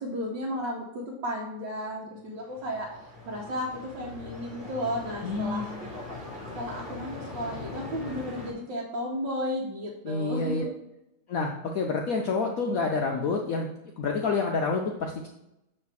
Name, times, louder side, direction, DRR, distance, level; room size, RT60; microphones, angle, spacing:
voice 1, 0.0-5.7 6.5-10.7, equal, 65° right, -4 dB, 1.6 m, -34 dB
sound 1, 2.3-8.5, left 3 dB, 30° right, 1.4 m, -41 dB
voice 2, 5.2-5.7 10.0-10.7 11.3-13.7 14.0-15.3, left 4 dB, 80° left, 1 dB, 0.7 m, -28 dB
7.4 x 3.3 x 4.7 m, 0.87 s
omnidirectional pair, 2.2 m